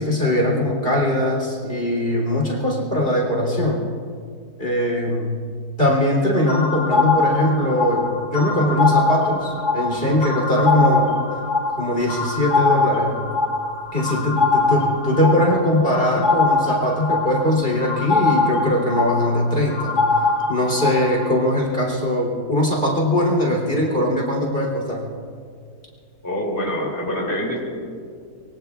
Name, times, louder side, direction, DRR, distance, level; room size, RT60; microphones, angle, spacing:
voice 1, 0.0-3.8 4.6-5.3 5.8-8.0 8.3-11.1 11.8-13.1 13.9-20.0 20.5-25.0, left 1 dB, 35° left, -1 dB, 3.5 m, -21 dB
sound 1, 6.5-21.3, left 3 dB, 70° left, 2.5 m, -22 dB
voice 2, 26.2-27.6, equal, 10° left, -3 dB, 2.8 m, -25 dB
25.0 x 23.5 x 2.4 m, 2.2 s
omnidirectional pair, 1.8 m